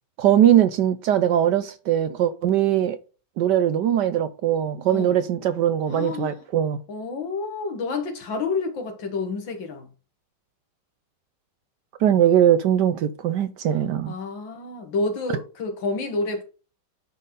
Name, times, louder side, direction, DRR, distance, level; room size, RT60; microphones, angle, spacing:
voice 1, 0.2-3.0 3.4-6.8 12.0-14.1, right 10 dB, 75° right, 1.1 m, -20 dB
voice 2, 5.9-6.4 6.9-9.9 14.1-16.4, left 3 dB, 70° left, 2.2 m, -29 dB
10.0 x 4.1 x 5.3 m
omnidirectional pair, 2.2 m